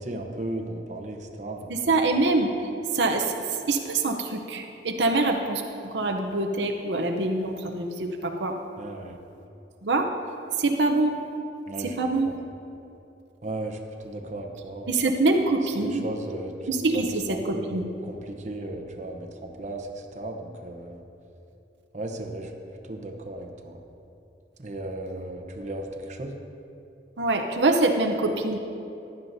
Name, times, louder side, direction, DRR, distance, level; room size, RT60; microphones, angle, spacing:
voice 1, 0.0-1.7 8.8-9.2 11.7-12.0 12.2-12.3 13.4-13.8 14.0-14.9 15.8-16.5 16.9-21.0 21.9-22.5 22.9-23.8 24.6-26.4, right 1 dB, 45° right, 3 dB, 0.9 m, -35 dB
voice 2, 1.7-8.6 9.8-10.1 10.6-11.2 11.8-12.3 14.9-16.1 16.7-17.9 27.2-28.6, right 2 dB, 80° right, 3 dB, 0.7 m, -25 dB
15.0 x 11.0 x 2.7 m, 2.8 s
head